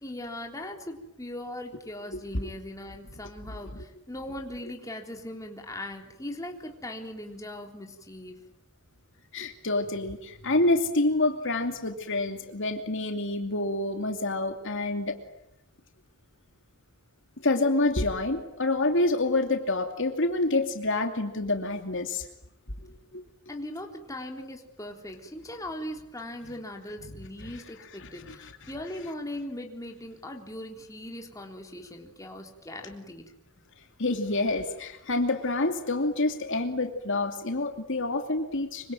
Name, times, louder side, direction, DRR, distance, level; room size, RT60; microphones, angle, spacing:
voice 1, 0.0-8.4 23.5-33.6, left 1 dB, 15° left, 2 dB, 3.6 m, -39 dB
voice 2, 9.3-15.2 17.4-22.2 23.1-23.2 28.2-28.5 34.0-38.9, left 2 dB, 55° left, 5 dB, 2.6 m, -27 dB
25.5 x 25.0 x 9.2 m, 0.83 s
head